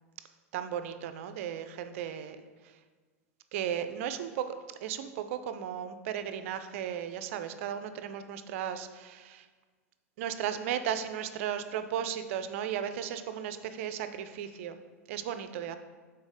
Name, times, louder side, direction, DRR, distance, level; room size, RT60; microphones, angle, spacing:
voice 1, 0.5-2.4 2.6-2.7 3.5-4.6 4.8-9.5 10.2-14.8 15.1-15.8, right 9 dB, 60° right, 10 dB, 0.5 m, -35 dB
6.2 x 4.1 x 4.9 m, 1.4 s
hypercardioid pair, 90°, 8 cm